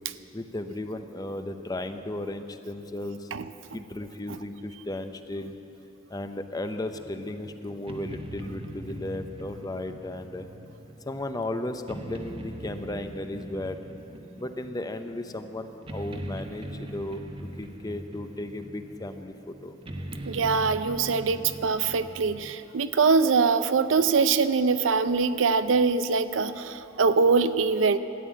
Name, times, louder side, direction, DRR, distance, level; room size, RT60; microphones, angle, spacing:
voice 1, 0.3-3.3 3.7-5.6 6.1-10.5 11.1-13.8 14.4-19.7, left 1 dB, 20° left, 8 dB, 0.6 m, -35 dB
sound 1, 6.9-22.5, right 1 dB, 30° right, 0.9 m, -41 dB
voice 2, 20.3-28.0, right 4 dB, 75° right, 12 dB, 0.5 m, -23 dB
13.0 x 9.1 x 8.7 m, 2.9 s
head